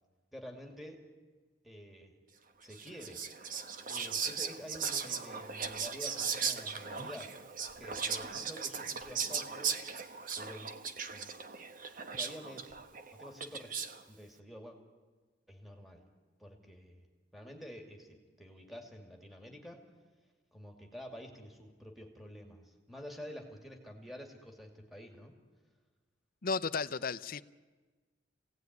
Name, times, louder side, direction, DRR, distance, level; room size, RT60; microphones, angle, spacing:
voice 1, 0.3-1.0 1.6-2.2 2.6-3.2 3.9-7.3 7.8-9.8 10.4-10.7 11.1-11.3 12.1-12.6 13.1-13.7 14.1-14.8 15.5-16.0 16.4-17.1 17.3-19.9 20.5-25.3, equal, ahead, 2 dB, 2.6 m, -49 dB
Whispering, 2.7-14.0, right 6 dB, 50° right, 1.2 m, -38 dB
voice 2, 26.4-27.4, left 5 dB, 55° left, 13 dB, 0.7 m, -34 dB
26.0 x 17.5 x 9.5 m, 1.3 s
head